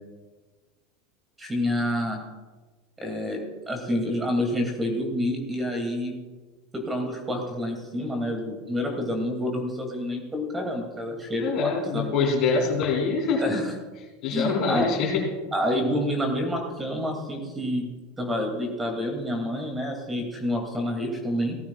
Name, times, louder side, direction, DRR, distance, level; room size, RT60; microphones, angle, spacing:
voice 1, 1.4-2.2 3.0-3.4 3.7-6.1 6.7-12.1 13.4-13.7 14.3-14.9 15.5-17.9 18.2-21.6, left 1 dB, 15° right, 3 dB, 2.5 m, -28 dB
voice 2, 11.4-13.5 14.2-15.3, left 4 dB, 45° left, 1 dB, 3.0 m, -24 dB
17.0 x 14.5 x 2.4 m, 1.3 s
figure-of-eight pair, 80°, 0 cm